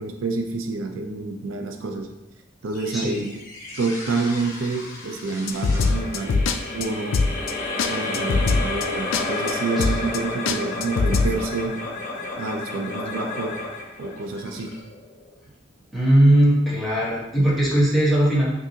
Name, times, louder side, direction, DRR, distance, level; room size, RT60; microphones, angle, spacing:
voice 1, 0.0-2.1 2.6-3.2 3.8-6.5 6.7-7.2 7.9-11.8 12.4-13.6 14.0-14.7, right 3 dB, 85° right, 3 dB, 0.5 m, -28 dB
sound 1, 2.7-15.3, left 2 dB, 45° left, 1.0 m, -32 dB
voice 2, 2.9-3.2 9.8-9.9 15.9-18.5, right 1 dB, ahead, -7 dB, 1.1 m, -19 dB
sound 2, 5.5-6.6 6.8-6.9 7.1-7.5 7.8-7.9 8.1-8.8 9.1-9.2 9.5-9.6 9.8-10.2 10.5-11.3, left 4 dB, 70° left, 0.3 m, -21 dB
5.8 x 2.7 x 2.8 m, 0.94 s
head